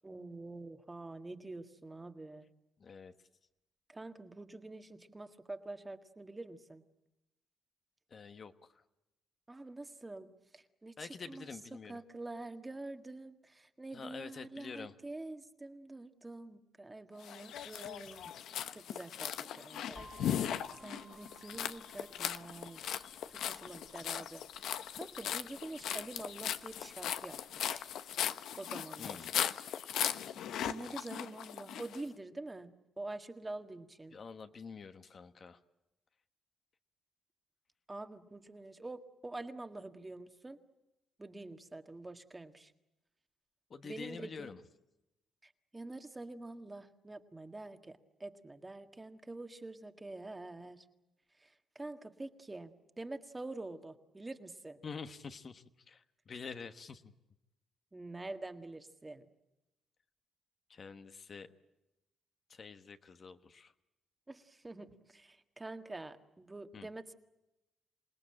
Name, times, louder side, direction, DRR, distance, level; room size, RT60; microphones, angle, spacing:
voice 1, 0.0-2.4 3.9-6.8 9.5-11.5 11.9-18.4 18.7-20.1 20.3-20.5 20.8-23.0 23.3-24.4 24.9-27.9 28.6-29.3 30.6-34.2 37.9-40.6 41.2-42.7 43.8-44.5 45.4-50.9 51.4-54.8 57.9-59.3 64.3-67.1, right 2 dB, 15° right, 7 dB, 1.7 m, -46 dB
voice 2, 2.8-3.1 8.1-8.8 11.0-12.0 13.9-14.9 29.0-29.3 34.1-35.6 43.7-44.6 54.8-57.1 60.7-61.5 62.5-63.7 66.7-66.9, left 5 dB, 45° left, 8 dB, 1.3 m, -47 dB
sound 1, 17.2-32.0, left 10 dB, 75° left, 1.0 m, -38 dB
sound 2, 20.0-27.8, right 2 dB, ahead, 2.4 m, -59 dB
27.5 x 18.5 x 8.8 m, 0.95 s
cardioid pair, 90°, 0 cm